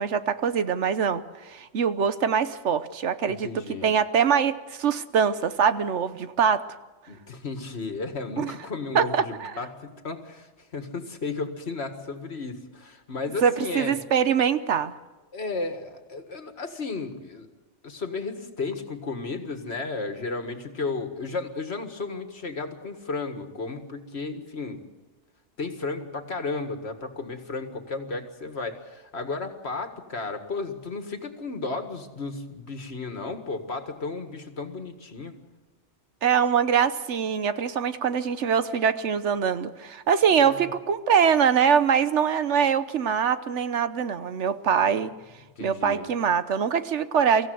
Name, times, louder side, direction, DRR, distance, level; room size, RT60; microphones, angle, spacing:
voice 1, 0.0-3.5 3.8-6.6 8.4-8.5 8.9-9.5 13.4-14.9 36.2-45.1 45.6-47.5, right 7 dB, 75° right, 12 dB, 1.2 m, -23 dB
voice 2, 3.3-3.9 7.1-14.0 15.3-17.5 17.8-24.8 25.6-35.3 40.4-40.7 45.6-46.1, left 3 dB, 60° left, 7 dB, 2.0 m, -34 dB
24.0 x 15.5 x 7.8 m, 1.2 s
omnidirectional pair, 1.2 m